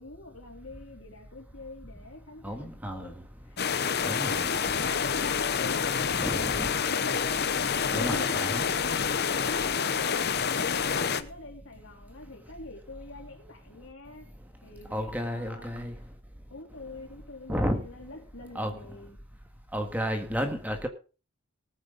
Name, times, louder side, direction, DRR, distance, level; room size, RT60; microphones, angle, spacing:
voice 1, 0.0-3.2 3.5-7.1 8.0-8.7 9.3-10.3 10.6-14.3 14.6-16.0 16.5-19.2, left 2 dB, 60° left, 3.4 m, -46 dB
voice 2, 2.4-3.1 4.1-4.5 6.1-6.7 7.9-8.6 14.9-15.9 17.5-17.8 18.6-18.7 19.7-20.9, equal, 5° right, 1.8 m, -31 dB
sound 1, 3.6-11.2, left 6 dB, 45° left, 0.8 m, -28 dB
18.5 x 9.1 x 4.0 m
head